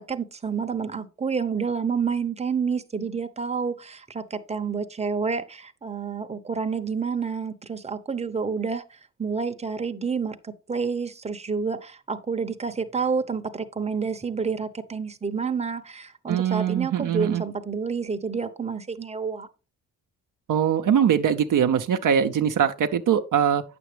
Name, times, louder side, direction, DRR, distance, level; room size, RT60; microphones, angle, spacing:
voice 1, 0.0-8.8 9.2-19.5, right 5 dB, 15° right, 0.9 m, -29 dB
voice 2, 16.3-17.4 20.5-23.6, right 8 dB, 55° right, 0.7 m, -22 dB
9.1 x 7.0 x 3.3 m
supercardioid pair, 55°, 37 cm